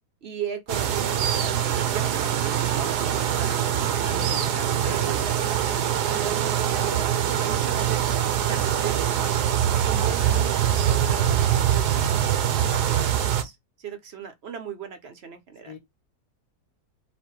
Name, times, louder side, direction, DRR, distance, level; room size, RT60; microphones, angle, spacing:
voice 1, 0.2-5.2 6.1-8.0 8.4-9.3 9.7-15.7, right 7 dB, 55° right, 0.8 m, -38 dB
sound 1, 0.7-13.4, right 10 dB, 70° right, 1.2 m, -23 dB
voice 2, 4.1-5.5 6.7-7.1 15.6-15.8, left 5 dB, 70° left, 1.4 m, -40 dB
4.3 x 2.2 x 4.5 m
omnidirectional pair, 1.8 m